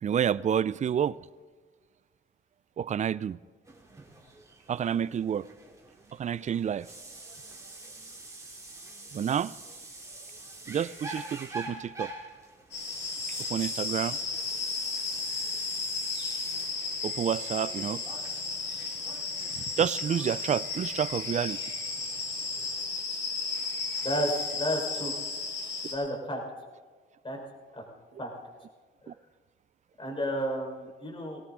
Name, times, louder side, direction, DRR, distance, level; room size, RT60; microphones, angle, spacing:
voice 1, 0.0-1.2 2.8-3.4 4.7-5.5 6.1-6.9 9.1-9.5 10.7-12.1 13.5-14.2 17.0-18.0 19.6-21.7 29.1-29.2, right 8 dB, 35° right, 0.4 m, -29 dB
sound 1, 3.7-22.8, right 2 dB, 15° right, 3.3 m, -46 dB
sound 2, 12.7-25.9, left 4 dB, 65° left, 5.0 m, -34 dB
voice 2, 24.0-25.1 25.9-26.4 27.2-27.4 27.7-27.8 28.2-28.3 29.0-29.1 30.0-31.4, equal, 25° left, 4.4 m, -32 dB
19.0 x 17.5 x 3.8 m
cardioid pair, 90°, 20 cm